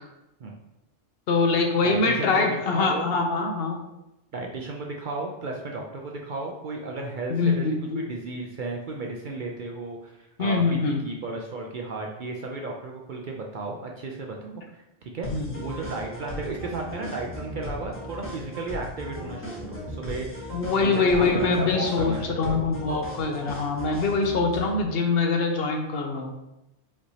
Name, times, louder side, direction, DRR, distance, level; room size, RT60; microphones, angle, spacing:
voice 1, 1.3-3.8 7.3-8.0 10.4-11.0 15.3-15.7 20.5-26.4, left 4 dB, 65° left, 3 dB, 0.8 m, -24 dB
voice 2, 1.8-2.5 2.7-3.1 4.3-15.3 15.6-20.5 20.8-22.7, right 3 dB, 60° right, 0 dB, 0.5 m, -34 dB
sound 1, 15.2-24.8, equal, 10° left, 1.0 m, -37 dB
5.2 x 3.2 x 2.7 m, 0.91 s
omnidirectional pair, 1.2 m